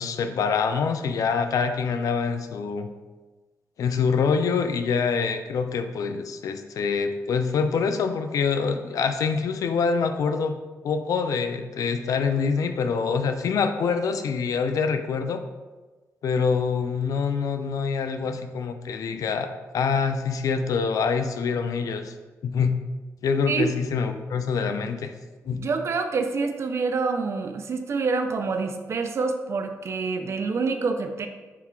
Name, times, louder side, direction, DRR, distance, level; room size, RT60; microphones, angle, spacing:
voice 1, 0.0-2.9 3.8-10.6 10.8-15.4 16.2-19.5 19.7-22.1 22.4-22.8 23.2-25.1 25.5-25.6, left 5 dB, 70° left, 7 dB, 0.3 m, -25 dB
voice 2, 25.5-31.3, right 4 dB, 50° right, 7 dB, 0.4 m, -27 dB
3.8 x 2.3 x 4.2 m, 1.2 s
cardioid pair, 110°, 6 cm